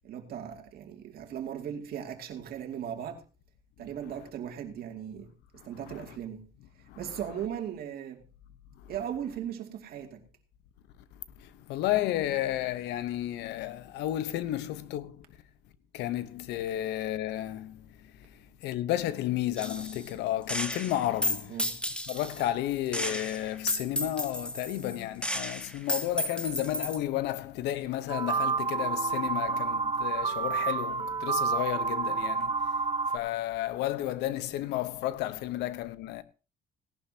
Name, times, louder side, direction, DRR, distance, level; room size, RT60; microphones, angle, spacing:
voice 1, 0.0-3.2 3.8-5.3 5.6-6.5 7.0-8.2 8.9-10.2 21.5-21.8 34.3-34.4, right 9 dB, 65° right, 2.5 m, -38 dB
voice 2, 11.4-15.2 15.9-17.8 18.6-21.6 22.1-32.6 33.1-36.2, left 13 dB, 85° left, 1.0 m, -32 dB
Gunshot gunfire, 19.6-20.1 20.5-22.5 22.9-27.0, left 1 dB, 5° left, 1.4 m, -33 dB
sound 1, 28.1-33.2, right 5 dB, 30° right, 1.6 m, -29 dB
18.0 x 11.5 x 2.9 m
cardioid pair, 110°, 17 cm